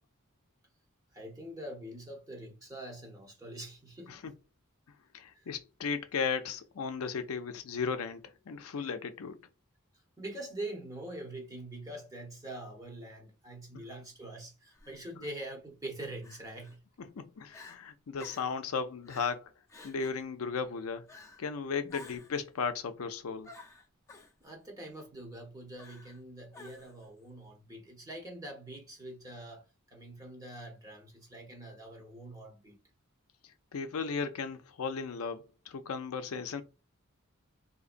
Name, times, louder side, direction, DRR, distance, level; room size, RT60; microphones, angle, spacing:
voice 1, 1.1-4.2 5.3-5.5 10.2-16.8 21.8-21.9 24.4-32.8, right 1 dB, 15° right, 0.9 m, -44 dB
voice 2, 5.1-9.4 17.1-19.5 19.8-21.1 21.4-23.5 33.7-36.6, left 5 dB, 80° left, 0.5 m, -35 dB
Crying sobbing, 14.7-15.0 16.2-16.8 17.2-17.3 17.5-17.8 18.2-18.6 19.1-19.4 19.7-20.2 21.1-21.5 21.9-22.4 23.4-24.3 25.8-26.2 26.5-27.1, left 3 dB, 15° left, 0.6 m, -52 dB
3.9 x 2.7 x 2.5 m
head